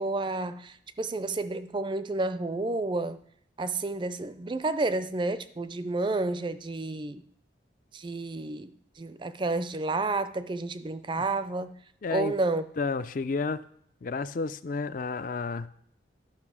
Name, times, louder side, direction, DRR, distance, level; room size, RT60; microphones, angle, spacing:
voice 1, 0.0-3.2 3.6-7.2 7.9-8.7 9.0-11.7 12.1-12.6, right 2 dB, 25° right, 0.4 m, -30 dB
voice 2, 12.0-12.3 12.8-13.6 14.0-15.7, left 4 dB, 45° left, 0.4 m, -31 dB
12.0 x 5.5 x 6.1 m
head